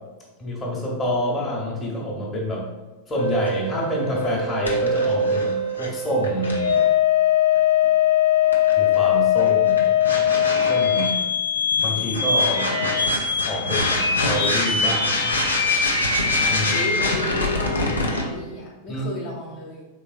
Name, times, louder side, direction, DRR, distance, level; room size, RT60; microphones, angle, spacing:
voice 1, 0.4-2.7 3.1-6.7 8.8-9.9 10.7-11.2 11.8-12.7 13.1-15.3 16.5-16.8 18.9-19.0, equal, 20° left, -3 dB, 0.9 m, -27 dB
sound 1, 3.2-18.3, left 5 dB, 80° left, 0.5 m, -21 dB
voice 2, 16.7-19.8, left 2 dB, 50° left, -4 dB, 0.9 m, -33 dB
4.0 x 3.4 x 2.5 m, 1.2 s
figure-of-eight pair, 90°, 0 cm